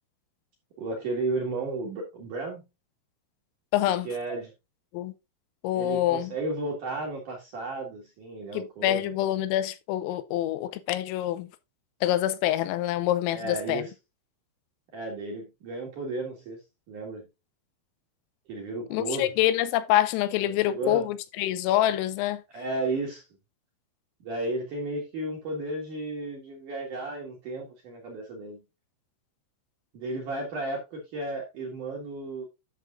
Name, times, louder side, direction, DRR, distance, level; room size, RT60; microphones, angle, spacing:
voice 1, 0.8-2.6 4.0-4.5 5.7-9.2 13.3-13.9 14.9-16.6 16.9-17.3 18.5-19.3 20.4-21.1 22.5-23.2 24.2-28.6 29.9-32.5, right 2 dB, 55° right, 2.4 m, -33 dB
voice 2, 3.7-4.1 4.9-5.1 5.6-6.3 8.5-11.5 12.0-13.8 18.9-22.4, left 13 dB, 85° left, 3.3 m, -26 dB
11.0 x 6.7 x 2.6 m
omnidirectional pair, 6.0 m